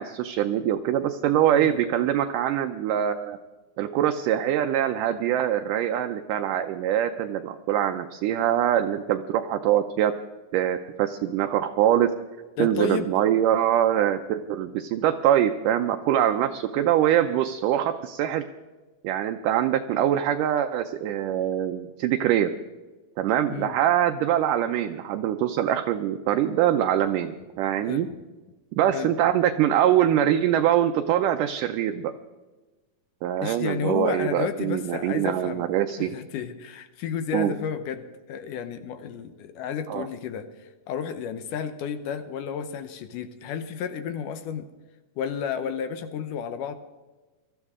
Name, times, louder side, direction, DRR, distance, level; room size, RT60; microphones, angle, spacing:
voice 1, 0.0-3.4 3.8-10.1 10.5-12.1 12.6-18.4 19.0-22.5 23.2-28.1 28.7-32.1 33.2-36.1 37.3-37.5 39.9-40.1, right 11 dB, 75° right, 6 dB, 2.0 m, -23 dB
voice 2, 12.6-13.1 23.5-23.7 27.9-28.2 28.9-29.1 33.4-35.7 36.0-44.7 45.2-46.7, left 7 dB, 75° left, 9 dB, 2.2 m, -32 dB
22.5 x 13.5 x 3.7 m, 1.2 s
omnidirectional pair, 4.1 m